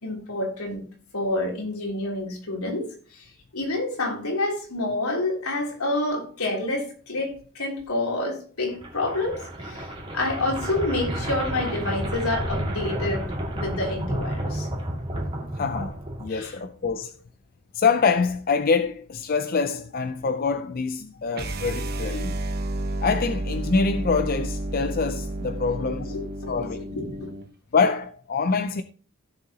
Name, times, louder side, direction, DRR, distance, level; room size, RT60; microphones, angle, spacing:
voice 1, 0.0-0.9 1.1-2.9 3.1-3.3 3.5-9.9 10.1-14.7 16.3-16.5 26.0-27.3, left 2 dB, 85° left, 3.3 m, -28 dB
sound 1, 8.7-16.7, right 1 dB, 25° right, 2.3 m, -31 dB
voice 2, 15.6-17.2 17.7-22.4 23.0-26.2 26.5-26.9 27.7-28.8, left 4 dB, 40° left, 0.5 m, -25 dB
sound 2, 21.3-27.5, right 1 dB, 45° right, 1.0 m, -31 dB
16.0 x 6.9 x 2.9 m
head